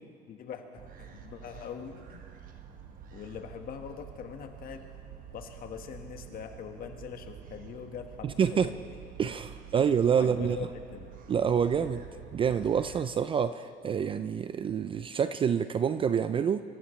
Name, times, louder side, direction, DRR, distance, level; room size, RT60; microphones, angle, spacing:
voice 1, 0.3-2.2 3.1-4.8 5.3-8.9 10.2-11.1, left 7 dB, 45° left, 5 dB, 1.5 m, -42 dB
sound 1, 0.7-13.0, right 8 dB, 45° right, 1.2 m, -48 dB
voice 2, 8.2-8.7 9.2-10.6 11.3-12.1 12.3-16.6, right 7 dB, 25° right, 12 dB, 0.4 m, -27 dB
26.0 x 14.5 x 3.2 m, 2.3 s
cardioid pair, 130°, 20 cm